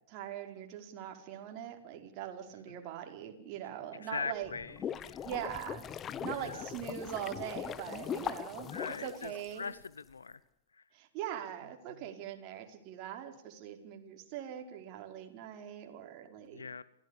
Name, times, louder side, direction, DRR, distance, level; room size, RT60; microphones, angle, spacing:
voice 1, 0.1-4.5 5.2-5.9 6.2-8.7 9.0-9.7 10.9-16.8, right 10 dB, 40° right, 4 dB, 5.0 m, -42 dB
voice 2, 4.0-5.3 6.1-6.7 8.7-10.4 10.7-10.8 16.5-16.8, left 5 dB, 85° left, 18 dB, 0.9 m, -41 dB
sound 1, 4.4-9.9, left 9 dB, 25° left, 1.1 m, -40 dB
27.5 x 17.0 x 8.4 m, 0.78 s
hypercardioid pair, 115°, 0 cm